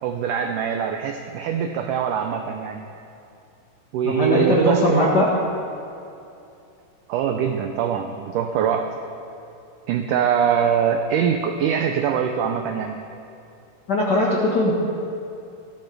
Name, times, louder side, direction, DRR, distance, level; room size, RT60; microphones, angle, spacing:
voice 1, 0.0-2.8 3.9-5.1 7.1-9.0 9.9-13.0, right 8 dB, 90° right, 5 dB, 1.8 m, -23 dB
voice 2, 4.0-5.3 13.9-14.7, equal, 90° left, -4 dB, 0.9 m, -19 dB
18.5 x 13.0 x 3.4 m, 2.7 s
omnidirectional pair, 4.4 m